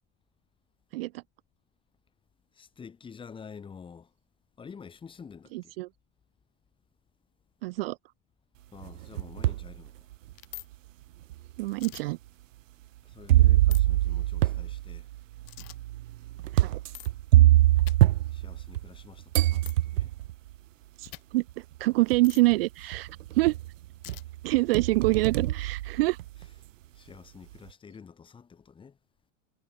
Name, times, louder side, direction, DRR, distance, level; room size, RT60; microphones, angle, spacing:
voice 1, 2.5-4.1 4.6-5.7 8.7-10.1 13.0-15.1 18.3-20.2 24.5-24.6 25.6-25.7 26.9-29.0, left 6 dB, 15° left, 3.9 m, -48 dB
voice 2, 5.5-5.9 7.6-8.0 11.6-12.2 16.5-16.8 21.0-23.1 23.3-23.5 24.4-26.2, right 21 dB, 50° right, 0.5 m, -26 dB
sound 1, 8.8-9.7 10.3-10.4 11.3-11.4 13.3-19.0 19.3-20.3 21.5-21.6 22.1-22.5 22.9-23.7 24.1-26.5, right 15 dB, 75° right, 2.3 m, -24 dB
sound 2, 10.3-10.7 11.7-12.0 13.7-13.8 15.5-15.8 16.9-17.1 17.8-18.0 19.6-19.7 21.0-21.2 22.2-22.4 24.0-24.2, left 40 dB or more, 40° left, 3.6 m, -43 dB
supercardioid pair, 160°, 39 cm